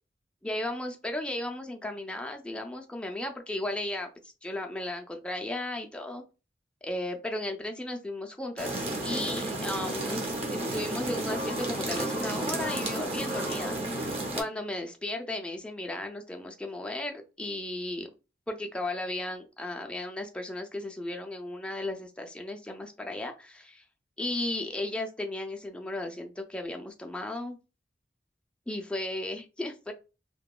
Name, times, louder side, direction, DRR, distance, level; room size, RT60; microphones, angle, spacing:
voice 1, 0.4-6.2 6.8-10.2 10.5-18.1 18.5-23.8 24.2-27.6 28.7-29.9, left 1 dB, 5° left, 3 dB, 0.3 m, -35 dB
sound 1, 8.6-14.4, right 1 dB, 35° right, 0.6 m, -32 dB
2.8 x 2.2 x 2.2 m, 0.31 s
head